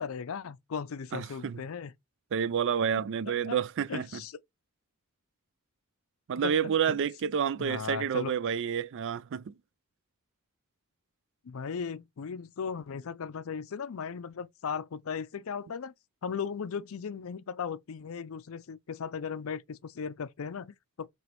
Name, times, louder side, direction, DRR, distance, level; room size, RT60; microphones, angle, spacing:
voice 1, 0.0-1.9 3.5-3.6 3.9-4.3 6.4-6.6 6.9-7.0 7.6-8.3 11.4-15.9 16.2-21.1, left 6 dB, 65° left, 0.5 m, -37 dB
voice 2, 1.1-1.6 2.3-4.2 6.3-9.5, right 7 dB, 55° right, 0.3 m, -29 dB
4.9 x 3.0 x 3.0 m
head